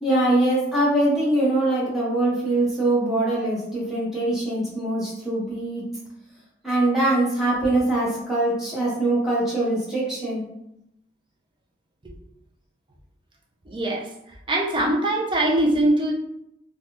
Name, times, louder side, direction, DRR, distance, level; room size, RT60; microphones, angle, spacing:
voice 1, 0.0-5.8 6.6-10.4, right 1 dB, 5° right, -8 dB, 1.0 m, -23 dB
voice 2, 13.7-14.1 14.5-16.1, right 1 dB, 25° right, -1 dB, 0.5 m, -22 dB
3.3 x 2.3 x 2.9 m, 0.81 s
head